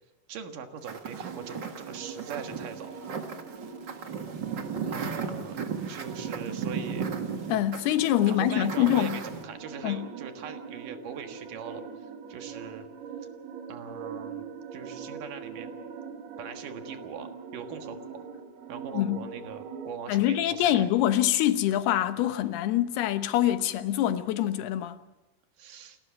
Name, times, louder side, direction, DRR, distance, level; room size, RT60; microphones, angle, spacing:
voice 1, 0.3-3.0 4.9-5.6 5.9-7.1 8.3-12.9 13.7-15.7 16.4-18.2 18.7-20.9 25.6-26.0, right 7 dB, 65° right, 3.0 m, -41 dB
sound 1, 0.8-9.4, right 6 dB, 45° right, 1.5 m, -35 dB
sound 2, 1.2-19.9, right 6 dB, 85° right, 4.6 m, -42 dB
voice 2, 7.5-9.2 9.8-10.1 18.9-19.2 20.1-25.0, left 12 dB, 85° left, 3.1 m, -25 dB
29.5 x 13.0 x 7.3 m
omnidirectional pair, 4.5 m